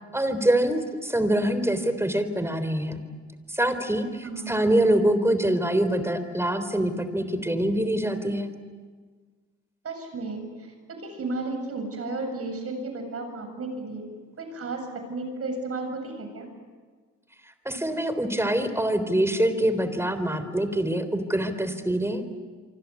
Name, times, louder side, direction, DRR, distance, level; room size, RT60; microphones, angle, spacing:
voice 1, 0.1-3.0 3.5-8.5 17.7-22.3, right 1 dB, 10° right, 11 dB, 3.6 m, -25 dB
voice 2, 4.2-4.6 9.8-14.0 14.4-14.8 15.1-16.5, right 3 dB, 50° right, 5 dB, 7.8 m, -33 dB
27.0 x 24.5 x 8.5 m, 1.5 s
cardioid pair, 90°, 30 cm